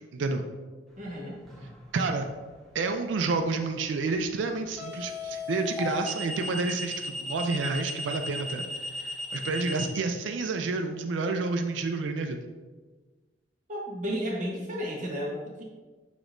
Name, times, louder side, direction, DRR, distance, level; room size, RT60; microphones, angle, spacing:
voice 1, 0.1-0.4 1.9-2.3 2.7-8.6 9.0-12.4, right 3 dB, 80° right, 5 dB, 0.4 m, -29 dB
voice 2, 1.0-1.4 13.7-15.6, equal, 45° right, -3 dB, 1.0 m, -33 dB
sound 1, 1.5-1.8 4.8-9.9, left 2 dB, ahead, 0.9 m, -35 dB
6.8 x 3.0 x 2.5 m, 1.3 s
head